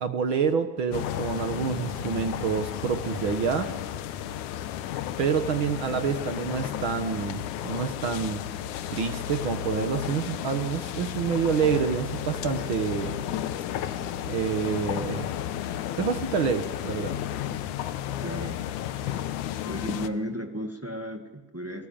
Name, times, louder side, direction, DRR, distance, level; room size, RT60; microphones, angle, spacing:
voice 1, 0.0-3.7 5.2-8.4 8.9-13.1 14.3-15.3 16.0-17.1, right 6 dB, 55° right, 8 dB, 1.6 m, -27 dB
sound 1, 0.9-20.1, left 10 dB, 75° left, 2.4 m, -33 dB
voice 2, 18.2-18.6 19.6-21.9, equal, 15° right, 5 dB, 0.6 m, -34 dB
28.5 x 19.0 x 8.9 m, 1.2 s
omnidirectional pair, 3.6 m